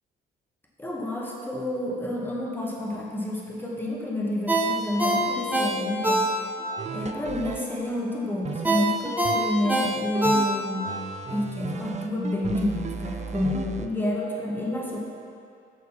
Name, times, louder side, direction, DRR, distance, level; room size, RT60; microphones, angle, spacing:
voice 1, 0.8-6.3 6.9-10.9 11.3-15.0, left 1 dB, 10° left, -3 dB, 1.7 m, -29 dB
Ringtone, 4.5-6.7 7.1-7.2 8.6-10.9 11.3-11.4, right 1 dB, 10° right, 1.3 m, -24 dB
sound 1, 6.8-7.7 8.5-10.5 10.9-13.9, right 5 dB, 35° right, 0.6 m, -34 dB
7.3 x 6.1 x 5.8 m, 2.5 s
cardioid pair, 90°, 20 cm